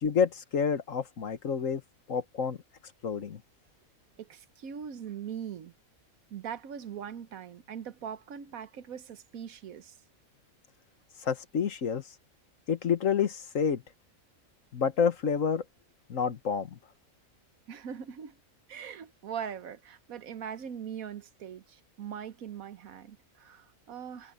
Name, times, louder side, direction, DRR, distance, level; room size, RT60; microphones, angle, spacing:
voice 1, 0.0-1.8 2.1-2.6 3.0-3.4 11.2-12.0 12.7-13.8 14.7-15.6 16.1-16.8, left 6 dB, 70° left, 1.7 m, -28 dB
voice 2, 4.2-5.7 6.3-9.9 17.7-18.4 18.7-24.3, right 8 dB, 85° right, 1.4 m, -41 dB
omnidirectional pair, 1.4 m